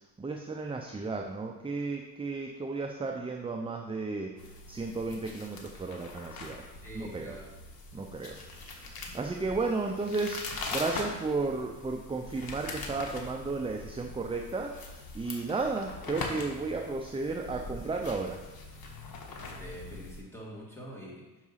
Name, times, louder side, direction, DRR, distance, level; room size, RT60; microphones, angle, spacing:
voice 1, 0.2-6.6 6.9-7.3 7.9-18.4, right 3 dB, 15° right, 2 dB, 0.5 m, -34 dB
sound 1, 4.4-20.2, left 3 dB, 60° left, 1.2 m, -42 dB
voice 2, 6.8-7.5 19.6-21.2, equal, 5° left, -3 dB, 2.0 m, -45 dB
6.0 x 4.8 x 5.7 m, 1.2 s
cardioid pair, 100°, 42 cm